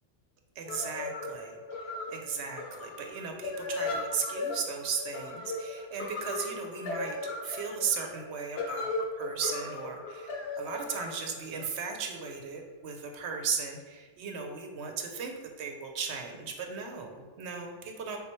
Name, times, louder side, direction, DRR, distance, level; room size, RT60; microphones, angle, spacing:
voice 1, 0.6-7.2 7.4-8.9 9.2-18.2, right 6 dB, 70° right, 3 dB, 0.8 m, -36 dB
sound 1, 0.7-12.3, left 2 dB, 65° left, 0.9 m, -37 dB
4.2 x 3.6 x 3.0 m, 1.4 s
omnidirectional pair, 1.2 m